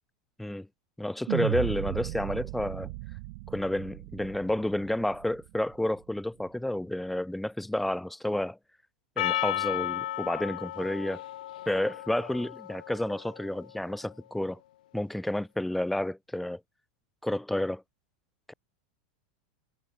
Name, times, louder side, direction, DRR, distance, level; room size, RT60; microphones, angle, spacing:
voice 1, 1.0-2.9 3.5-8.6 9.2-11.2 11.7-14.6 14.9-16.6 17.2-17.8 18.5-18.6, left 1 dB, 5° left, 0.8 m, -30 dB
sound 1, 1.3-5.6, right 25 dB, 60° right, 0.6 m, -35 dB
Percussion, 9.2-13.7, left 14 dB, 85° left, 1.0 m, -34 dB
supercardioid pair, 150°, 4 cm